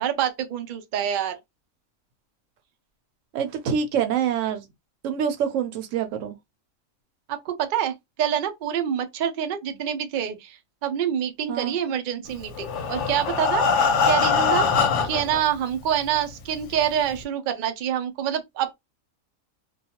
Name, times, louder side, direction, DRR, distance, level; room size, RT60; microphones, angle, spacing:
voice 1, 0.0-1.4 7.3-18.7, right 9 dB, 90° right, 0.4 m, -27 dB
voice 2, 3.3-4.7 5.0-6.4 11.5-11.8, right 8 dB, 70° right, 0.9 m, -26 dB
Breathing, 12.5-15.4 16.2-16.3 16.6-16.7 17.2-17.3, left 5 dB, 65° left, 0.9 m, -22 dB
2.3 x 2.2 x 2.8 m
omnidirectional pair, 1.5 m